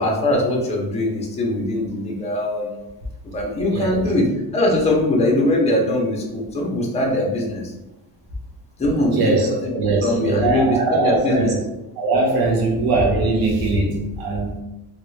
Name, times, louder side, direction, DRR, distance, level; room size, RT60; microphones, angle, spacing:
voice 1, 0.0-2.9 3.3-4.3 4.5-7.7 8.8-11.6, left 1 dB, 15° left, -2 dB, 0.6 m, -21 dB
voice 2, 3.6-4.0 9.2-9.5 9.8-11.6 12.0-14.5, right 3 dB, 70° right, 0 dB, 1.0 m, -20 dB
3.1 x 2.4 x 3.1 m, 0.98 s
cardioid pair, 155°, 39 cm